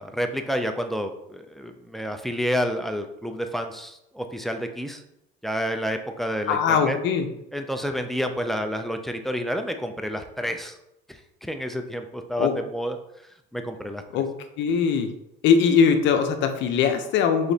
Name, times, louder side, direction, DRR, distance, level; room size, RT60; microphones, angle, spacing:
voice 1, 0.0-5.0 5.4-7.0 7.5-10.8 11.1-13.0 13.5-14.0, equal, ahead, 6 dB, 0.3 m, -29 dB
voice 2, 6.5-7.3 12.4-12.5 14.1-14.3 14.6-15.1 15.4-17.5, left 6 dB, 60° left, 7 dB, 0.7 m, -21 dB
5.0 x 3.8 x 2.8 m, 0.82 s
cardioid pair, 135°, 21 cm